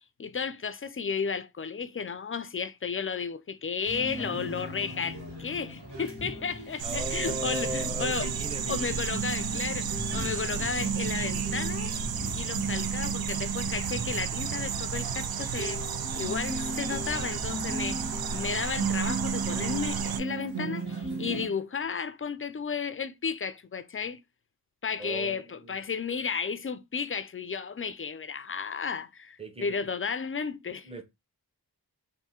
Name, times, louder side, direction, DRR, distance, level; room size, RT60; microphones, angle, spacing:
voice 1, 0.2-8.3 8.7-11.9 12.3-15.8 16.2-24.2 24.8-30.9, left 6 dB, 35° left, 0.4 m, -33 dB
sound 1, 3.8-21.5, right 3 dB, 80° right, 1.8 m, -36 dB
voice 2, 6.8-9.1 25.0-25.8 29.4-29.8 30.8-31.0, right 1 dB, 15° right, 0.9 m, -37 dB
sound 2, 6.8-20.2, right 7 dB, 65° right, 0.5 m, -33 dB
3.5 x 2.6 x 4.2 m
wide cardioid pair, 90°, 40 cm